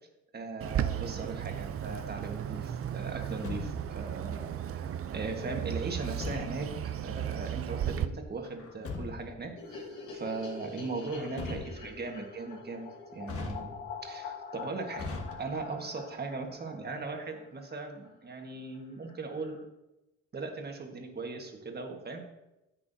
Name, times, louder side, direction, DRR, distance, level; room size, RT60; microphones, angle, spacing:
voice 1, 0.3-6.8 7.0-13.7 14.0-19.6 20.3-22.2, right 3 dB, 35° right, 3 dB, 1.5 m, -39 dB
Bird, 0.6-8.1, right 10 dB, 50° right, 0.5 m, -35 dB
Truck, 3.1-4.1 5.9-6.8 8.4-9.4 11.0-12.1 13.2-14.1 15.0-15.8, left 3 dB, 50° left, 1.5 m, -40 dB
sound 1, 9.6-17.8 18.0-18.1 18.4-18.5 18.7-18.8 19.1-19.6, left 5 dB, 85° left, 1.7 m, -45 dB
10.0 x 8.4 x 2.7 m, 0.96 s
cardioid pair, 90°, 30 cm